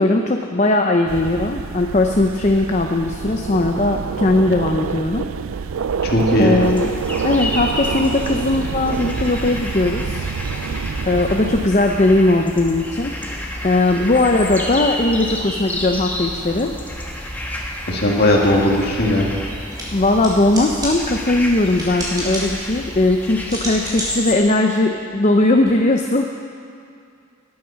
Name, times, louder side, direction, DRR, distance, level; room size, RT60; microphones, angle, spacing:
voice 1, 0.0-5.3 6.4-6.9 7.2-10.3 11.0-13.1 13.6-16.7 19.9-26.2, left 2 dB, 35° left, 3 dB, 0.7 m, -18 dB
sound 1, 1.1-11.7, right 6 dB, 85° right, 0.4 m, -27 dB
voice 2, 6.0-6.6 17.9-19.3, left 1 dB, 50° left, -2 dB, 2.4 m, -17 dB
sound 2, 6.6-24.3, left 1 dB, 10° left, 1.3 m, -30 dB
sound 3, 19.6-25.7, equal, 20° right, 3.5 m, -32 dB
19.0 x 9.5 x 5.9 m, 2.4 s
head